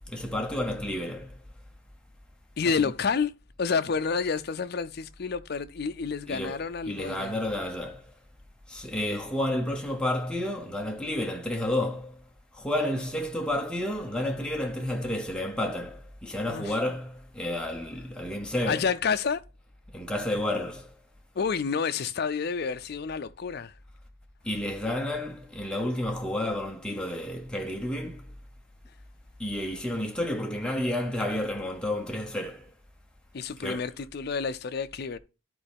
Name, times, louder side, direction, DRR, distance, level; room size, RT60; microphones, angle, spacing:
voice 1, 0.1-1.4 2.7-2.8 6.3-6.6 6.9-8.0 8.7-12.2 12.5-18.9 19.9-20.9 24.4-28.3 29.4-32.7 33.6-33.8, left 1 dB, 5° left, 0.8 m, -31 dB
voice 2, 2.6-3.3 3.6-7.4 16.5-16.7 18.7-19.4 21.3-23.7 33.3-35.2, left 5 dB, 50° left, 0.4 m, -29 dB
12.5 x 4.3 x 3.5 m
head